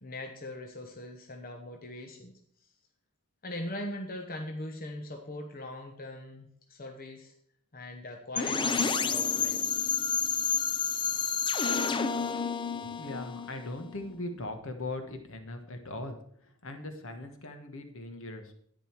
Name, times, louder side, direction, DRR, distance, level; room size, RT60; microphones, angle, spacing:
voice 1, 0.0-2.4 3.4-7.3 7.7-9.6, left 1 dB, 40° left, 3 dB, 1.1 m, -41 dB
sound 1, 8.4-14.2, left 5 dB, 20° left, 0.5 m, -30 dB
voice 2, 12.7-16.2 16.6-18.5, left 2 dB, 60° left, 7 dB, 1.4 m, -39 dB
10.5 x 9.5 x 4.6 m, 0.65 s
head